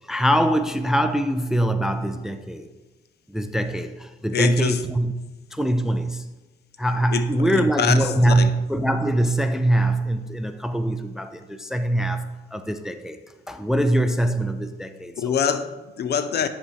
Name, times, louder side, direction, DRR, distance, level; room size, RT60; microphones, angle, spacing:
voice 1, 0.1-2.7 3.3-5.1 5.5-6.3 6.8-13.2 13.5-15.1, right 1 dB, ahead, 9 dB, 0.4 m, -23 dB
voice 2, 4.3-4.8 7.1-8.5 15.2-16.5, left 7 dB, 55° left, 11 dB, 0.6 m, -25 dB
9.5 x 3.5 x 4.6 m, 1.2 s
cardioid pair, 90°, 20 cm